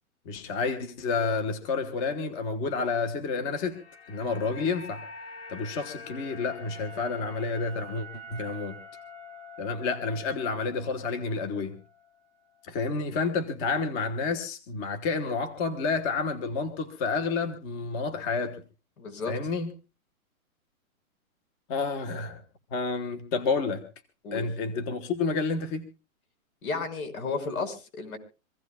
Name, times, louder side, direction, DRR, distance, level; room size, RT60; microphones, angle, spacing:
voice 1, 0.2-3.8 4.1-5.0 5.5-8.8 9.6-11.8 12.6-18.6 19.3-19.7 21.7-22.4 22.7-23.8 24.3-25.8, left 4 dB, 20° left, 8 dB, 1.2 m, -30 dB
sound 1, 3.2-11.5 11.8-12.0, left 2 dB, 45° left, 5.9 m, -45 dB
voice 2, 19.0-19.4 24.2-24.5 26.6-28.2, left 4 dB, 75° left, 8 dB, 5.8 m, -33 dB
25.0 x 16.0 x 2.3 m, 0.35 s
hypercardioid pair, 165°, 43 cm